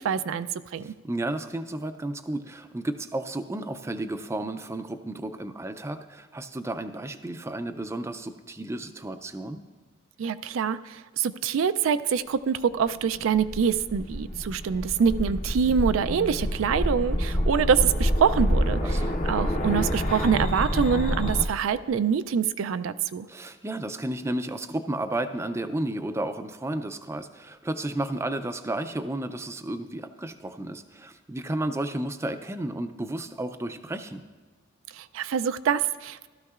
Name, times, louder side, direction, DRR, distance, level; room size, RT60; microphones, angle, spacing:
voice 1, 0.0-0.9 10.2-19.0 19.3-23.3 34.9-36.3, right 7 dB, 75° right, 12 dB, 0.4 m, -25 dB
voice 2, 0.8-9.6 18.8-19.2 23.3-34.2, right 1 dB, 15° right, 9 dB, 0.4 m, -32 dB
sound 1, 13.1-21.4, equal, 35° left, 0.8 m, -27 dB
16.0 x 13.0 x 2.4 m, 1.4 s
head